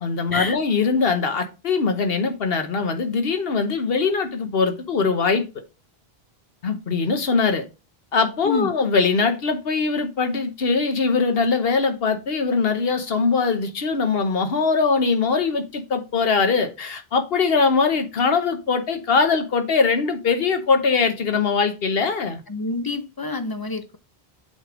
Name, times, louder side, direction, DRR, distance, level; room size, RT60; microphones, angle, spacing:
voice 1, 0.0-5.4 6.6-7.6 8.1-22.4, left 4 dB, 70° left, 1.2 m, -21 dB
voice 2, 22.5-24.0, left 3 dB, 35° left, 0.4 m, -27 dB
7.9 x 3.4 x 3.7 m
omnidirectional pair, 1.0 m